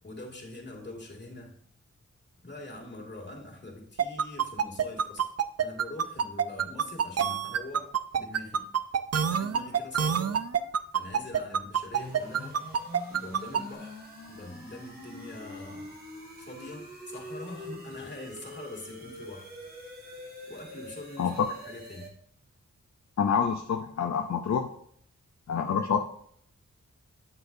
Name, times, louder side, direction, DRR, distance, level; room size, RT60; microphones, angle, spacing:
voice 1, 0.0-1.6 2.4-5.3 5.6-8.6 9.2-10.3 10.9-12.6 13.1-15.9 16.4-19.6 20.5-22.1, left 2 dB, 35° left, -1 dB, 2.4 m, -44 dB
sound 1, 4.0-13.6, right 7 dB, 55° right, 0.5 m, -26 dB
sound 2, 11.9-22.1, equal, 30° right, 2.4 m, -45 dB
voice 2, 23.2-24.7 25.5-26.0, left 6 dB, 60° left, 5 dB, 0.6 m, -27 dB
8.9 x 7.8 x 2.7 m, 0.65 s
wide cardioid pair, 65°, 30 cm